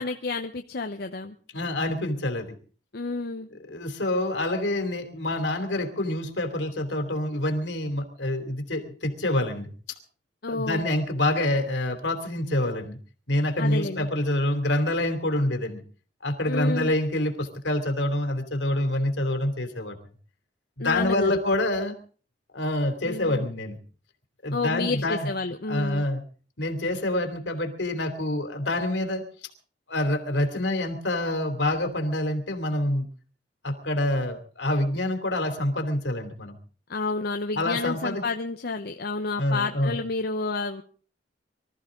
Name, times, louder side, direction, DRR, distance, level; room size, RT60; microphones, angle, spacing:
voice 1, 0.0-1.3 2.9-3.5 10.4-10.8 13.6-14.1 16.5-16.9 20.8-21.3 23.1-23.5 24.5-26.0 36.9-40.8, left 3 dB, 60° left, 5 dB, 0.9 m, -30 dB
voice 2, 1.5-2.5 3.5-9.7 10.5-13.0 13.3-15.8 16.2-20.0 20.8-21.9 22.5-23.8 24.4-25.3 25.7-26.2 26.6-29.2 29.9-33.1 33.6-36.5 37.5-38.2 39.4-40.0, left 1 dB, 80° left, 6 dB, 3.0 m, -26 dB
24.0 x 14.0 x 3.8 m, 0.42 s
head